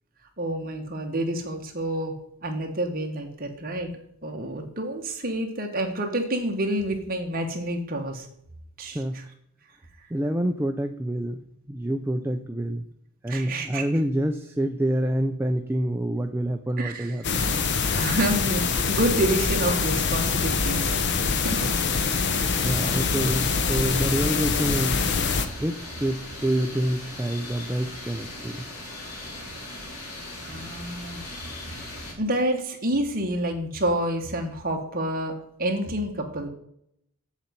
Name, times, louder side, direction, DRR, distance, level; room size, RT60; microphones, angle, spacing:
voice 1, 0.4-2.1 2.4-3.9 4.2-8.3 8.8-9.0 13.3-13.8 16.8-17.2 17.9-21.0 21.4-21.7 30.4-31.9 32.2-35.3 35.6-36.5, right 1 dB, 40° right, 2 dB, 1.5 m, -28 dB
voice 2, 8.9-9.3 10.1-12.8 13.2-17.5 22.6-25.1 25.6-28.7, right 1 dB, 10° right, 6 dB, 0.4 m, -27 dB
sound 1, 17.2-25.5, left 5 dB, 50° left, 0.8 m, -24 dB
sound 2, 21.2-32.1, left 2 dB, 85° left, 2.9 m, -39 dB
7.7 x 7.2 x 5.3 m, 0.74 s
head